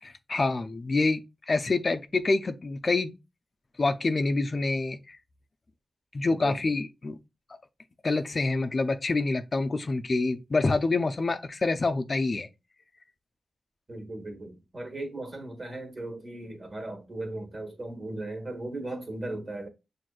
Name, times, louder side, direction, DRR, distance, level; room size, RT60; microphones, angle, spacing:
voice 1, 0.0-3.1 3.8-5.2 6.1-7.2 8.0-12.5, left 3 dB, 45° left, 0.4 m, -27 dB
voice 2, 6.3-6.6 13.9-19.7, right 2 dB, 40° right, 1.3 m, -37 dB
6.0 x 2.6 x 2.3 m
cardioid pair, 55°, 0 cm